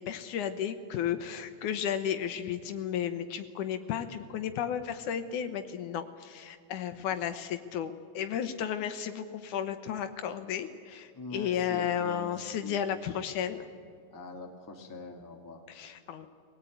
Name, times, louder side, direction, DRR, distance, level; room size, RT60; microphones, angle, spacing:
voice 1, 0.0-13.7 15.7-16.3, left 9 dB, 70° left, 9 dB, 2.3 m, -33 dB
voice 2, 11.1-12.3 12.6-12.8 14.1-15.6, left 3 dB, 10° left, 2 dB, 1.1 m, -42 dB
23.0 x 18.5 x 9.2 m, 2.2 s
omnidirectional pair, 3.9 m